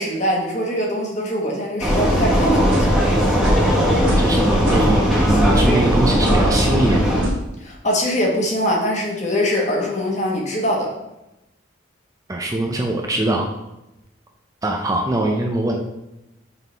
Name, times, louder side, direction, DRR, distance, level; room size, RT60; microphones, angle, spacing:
voice 1, 0.0-2.9 7.6-10.9, equal, 35° left, -1 dB, 1.2 m, -22 dB
Vehicle, 1.8-7.2, equal, ahead, 1.2 m, -18 dB
sound 1, 2.7-3.0 3.4-3.7 4.1-4.3 4.6-5.1 5.5-5.8 6.2-6.5 7.2-7.4, equal, 70° right, 1.3 m, -25 dB
voice 2, 4.2-7.0 12.3-13.5 14.6-15.7, right 1 dB, 15° right, 1 dB, 0.4 m, -22 dB
6.0 x 3.7 x 4.4 m, 0.93 s
head